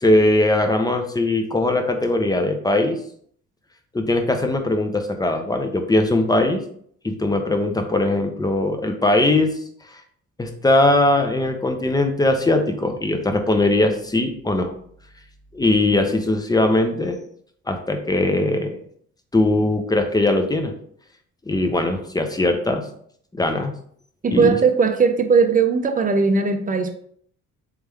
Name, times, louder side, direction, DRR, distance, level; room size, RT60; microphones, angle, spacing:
voice 1, 0.0-3.0 3.9-6.6 7.0-9.5 10.4-14.7 15.5-17.2 17.7-18.8 19.3-20.7 21.5-22.8 23.4-23.7 24.3-24.6, left 2 dB, 15° left, 5 dB, 0.6 m, -20 dB
voice 2, 24.2-26.9, right 5 dB, 30° right, 7 dB, 0.5 m, -18 dB
3.5 x 3.2 x 3.4 m, 0.62 s
cardioid pair, 90°, 30 cm